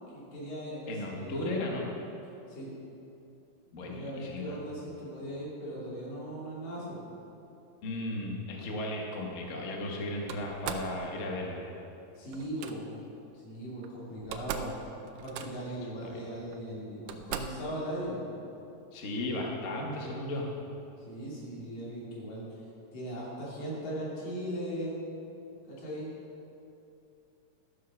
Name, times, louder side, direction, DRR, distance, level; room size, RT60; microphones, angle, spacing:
voice 1, 0.1-1.5 2.5-2.7 3.8-7.1 12.2-12.9 13.3-14.7 15.2-18.3 21.1-22.6 22.9-24.9 25.6-26.1, right 1 dB, 85° left, -7 dB, 4.5 m, -38 dB
voice 2, 0.9-1.9 3.7-4.6 7.8-11.6 16.0-16.2 18.9-20.5, left 1 dB, 60° left, -1 dB, 0.7 m, -35 dB
Slam, 10.3-10.9 12.3-12.7 13.8-13.9 14.2-14.8 15.1-15.8 16.5-16.6 17.1-17.7, right 8 dB, 90° right, 2.3 m, -39 dB
12.5 x 6.6 x 6.2 m, 2.8 s
omnidirectional pair, 3.8 m